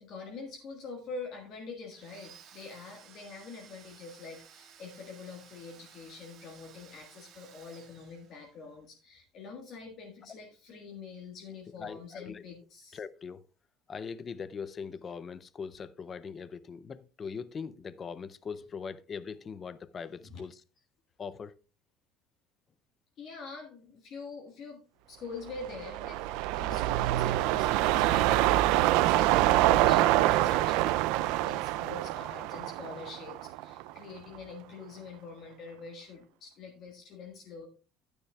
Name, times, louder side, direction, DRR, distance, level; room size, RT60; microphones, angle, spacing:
voice 1, 0.0-13.0 20.0-20.4 23.2-24.8 25.1-31.0 31.4-37.7, left 4 dB, 40° left, 1.5 m, -45 dB
Domestic sounds home sounds, 1.9-8.7, right 8 dB, 40° right, 1.5 m, -56 dB
voice 2, 11.8-12.4 12.9-13.4 13.9-20.6 21.2-21.6, left 6 dB, 20° left, 0.4 m, -41 dB
sound 1, 25.5-34.0 34.3-34.4, right 15 dB, 65° right, 0.3 m, -26 dB
13.0 x 9.1 x 2.3 m
cardioid pair, 180°, 0 cm